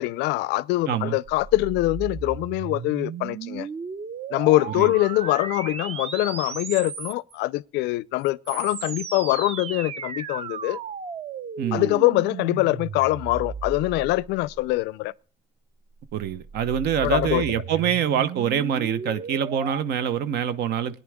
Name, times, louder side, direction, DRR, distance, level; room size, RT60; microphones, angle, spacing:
voice 1, 0.0-3.7 4.3-10.8 11.7-15.1 17.0-17.6, left 18 dB, 90° left, 0.5 m, -24 dB
sound 1, 1.3-7.4 8.2-14.8 15.9-19.8, right 6 dB, 35° right, 0.7 m, -35 dB
voice 2, 11.6-11.9 16.1-21.0, right 8 dB, 75° right, 0.9 m, -25 dB
18.0 x 10.0 x 3.6 m
cardioid pair, 110°, 17 cm